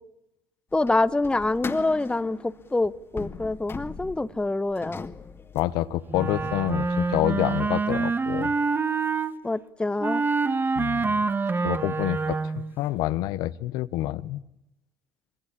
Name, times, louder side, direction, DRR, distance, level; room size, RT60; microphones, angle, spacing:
sound 1, 0.7-7.1, left 5 dB, 30° left, 2.0 m, -40 dB
voice 1, 0.7-5.1 9.4-10.2, left 2 dB, 10° left, 14 dB, 1.1 m, -26 dB
voice 2, 5.5-8.5 10.8-11.1 11.6-14.4, left 15 dB, 65° left, 14 dB, 1.0 m, -27 dB
Wind instrument woodwind instrument, 6.1-9.3 10.0-12.8, right 4 dB, 25° right, 1.6 m, -26 dB
25.5 x 22.5 x 8.5 m, 0.83 s
hypercardioid pair, 60°, 8 cm